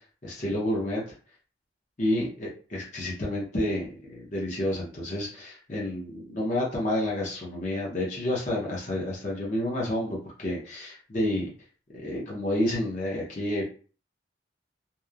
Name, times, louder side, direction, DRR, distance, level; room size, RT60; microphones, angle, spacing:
voice 1, 0.2-1.0 2.0-11.5 11.9-13.6, left 1 dB, 40° left, -4 dB, 0.7 m, -29 dB
2.9 x 2.0 x 2.4 m, 0.39 s
head